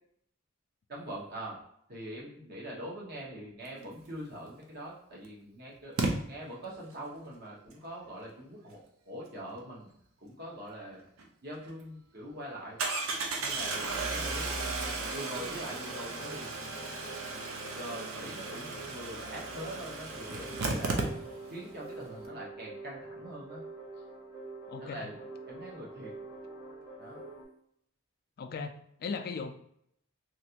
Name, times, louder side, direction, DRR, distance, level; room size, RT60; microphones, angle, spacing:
voice 1, 0.9-1.6 1.9-6.0 6.2-8.8 9.0-9.9 10.2-11.0 11.4-12.8 13.4-14.5 15.1-16.9 17.8-21.1 21.5-23.6 24.8-25.2 25.5-26.1 27.0-27.2, right 1 dB, 50° right, -4 dB, 1.1 m, -43 dB
Engine starting, 4.5-4.6 6.0-6.1 11.2-11.3 11.6-11.7 12.8-21.6 21.9-22.0 22.2-22.3, right 3 dB, 70° right, 0.5 m, -35 dB
sound 1, 13.6-27.4, right 2 dB, 20° right, 1.1 m, -47 dB
voice 2, 24.7-25.1 28.4-29.5, left 5 dB, 45° left, 8 dB, 0.3 m, -38 dB
3.1 x 2.5 x 2.8 m, 0.71 s
head